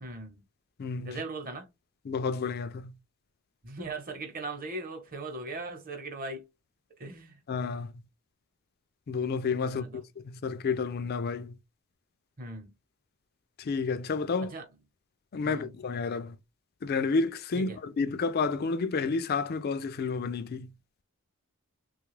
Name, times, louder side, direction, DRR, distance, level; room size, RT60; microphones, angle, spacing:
voice 1, 0.0-0.4 1.0-1.7 3.6-6.5 7.0-7.4 9.7-10.0 12.4-12.7 14.4-14.6 15.4-15.7 17.5-17.8, right 2 dB, 40° right, 0.9 m, -39 dB
voice 2, 0.8-1.2 2.1-2.9 7.5-7.9 9.1-11.5 13.6-14.5 15.3-16.4 16.8-20.7, left 4 dB, 45° left, 0.4 m, -30 dB
3.2 x 2.3 x 3.1 m
head